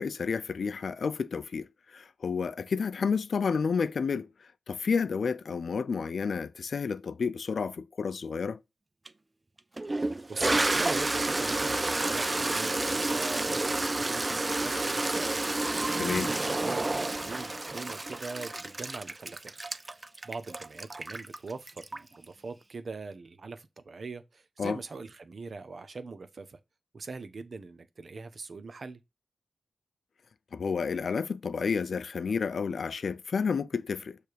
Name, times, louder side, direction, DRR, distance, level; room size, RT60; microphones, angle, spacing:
voice 1, 0.0-8.6 16.0-16.3 24.6-24.8 30.5-34.2, left 5 dB, 65° left, 0.4 m, -30 dB
Toilet flush, 9.1-9.2 9.8-22.2, right 2 dB, 25° right, 0.3 m, -30 dB
voice 2, 10.3-15.3 16.1-19.5 20.2-26.6 26.9-29.0, right 4 dB, 50° right, 0.8 m, -41 dB
6.7 x 3.4 x 4.5 m
wide cardioid pair, 115°, 0 cm